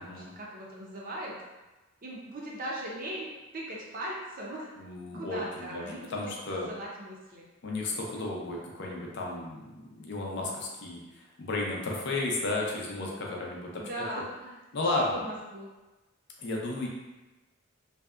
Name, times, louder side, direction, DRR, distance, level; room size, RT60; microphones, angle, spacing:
voice 1, 0.0-1.4 2.0-3.3 3.5-4.7 5.1-6.1 6.7-7.5 13.8-14.6 15.0-15.7, right 1 dB, 45° right, -3 dB, 0.5 m, -39 dB
voice 2, 4.8-6.7 7.6-13.8 14.7-15.2 16.4-16.9, left 2 dB, 55° left, -2 dB, 0.5 m, -33 dB
2.7 x 2.1 x 2.3 m, 1.1 s
head